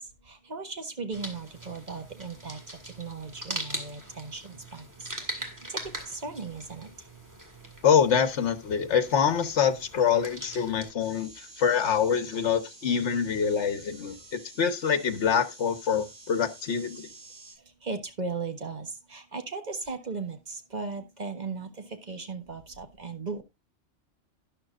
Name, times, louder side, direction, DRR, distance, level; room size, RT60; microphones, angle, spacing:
voice 1, 0.2-6.9 17.8-23.4, right 4 dB, 40° right, 1.5 m, -37 dB
sound 1, 1.1-10.9, right 1 dB, 15° right, 1.8 m, -41 dB
voice 2, 7.8-17.1, left 7 dB, 70° left, 1.4 m, -25 dB
sound 2, 11.0-17.5, right 2 dB, 65° right, 6.6 m, -50 dB
11.5 x 10.5 x 2.4 m
omnidirectional pair, 1.2 m